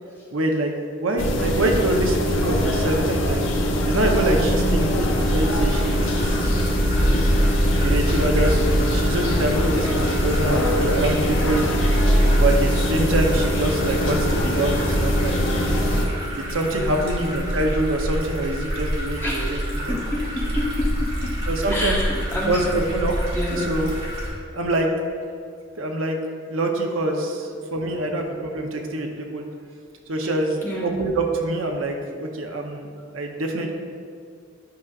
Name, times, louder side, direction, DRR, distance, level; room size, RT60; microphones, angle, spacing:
voice 1, 0.3-0.7 1.0-3.4 3.8-11.6 12.4-15.4 16.3-19.9 21.5-22.0 22.5-23.1 23.5-23.9 24.5-24.9 25.8-26.2 26.5-29.4 30.1-32.9 33.1-33.7, right 1 dB, 90° right, 3 dB, 0.8 m, -25 dB
sound 1, 1.2-16.1, equal, 70° left, 0.8 m, -21 dB
voice 2, 4.5-5.0 16.9-17.3 19.2-19.5 19.9-21.3 21.7-23.1 23.3-23.7 30.6-31.0, left 1 dB, 10° left, -5 dB, 1.1 m, -29 dB
Chiemsee Fraueninsel Frühling Regenrinne, 4.8-24.3, equal, 30° right, 1.6 m, -30 dB
10.5 x 5.9 x 2.4 m, 2.3 s
head